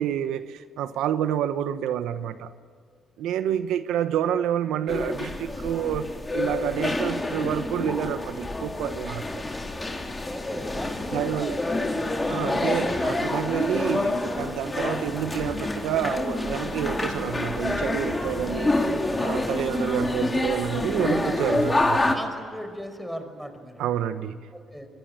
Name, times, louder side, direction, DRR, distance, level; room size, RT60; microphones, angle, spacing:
voice 1, 0.0-2.5 3.2-9.4 11.1-11.6 12.3-18.8 19.2-22.0 23.8-24.4, right 10 dB, 90° right, 11 dB, 1.0 m, -28 dB
sound 1, 4.9-22.2, left 2 dB, 20° left, 4.0 m, -27 dB
voice 2, 10.3-13.2 21.0-21.8 22.1-23.8 24.5-24.9, equal, ahead, 7 dB, 5.2 m, -37 dB
27.0 x 22.0 x 8.9 m, 2.2 s
cardioid pair, 90°, 0 cm